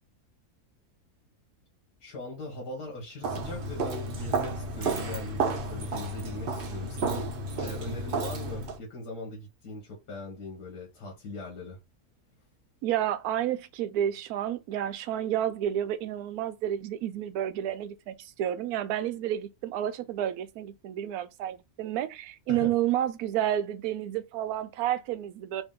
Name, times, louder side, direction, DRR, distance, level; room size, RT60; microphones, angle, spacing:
voice 1, 2.0-7.3 7.6-11.8 22.5-22.7, left 2 dB, 85° left, 1.8 m, -40 dB
Walk footsteps, 3.2-8.8, right 3 dB, 50° right, 0.7 m, -32 dB
voice 2, 12.8-25.6, right 11 dB, 75° right, 1.0 m, -30 dB
3.6 x 3.0 x 3.6 m
omnidirectional pair, 1.7 m